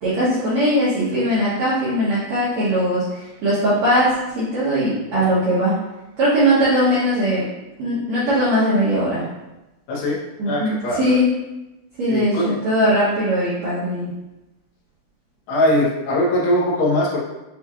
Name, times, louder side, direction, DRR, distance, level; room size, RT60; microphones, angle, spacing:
voice 1, 0.0-5.8 6.2-7.4 7.8-9.2 10.4-11.3 12.0-14.1, equal, 75° right, -10 dB, 1.6 m, -20 dB
voice 2, 9.9-10.2 10.5-11.2 12.1-12.6 15.5-17.2, left 1 dB, 90° left, -4 dB, 3.1 m, -20 dB
6.8 x 2.8 x 2.4 m, 0.99 s
omnidirectional pair, 4.6 m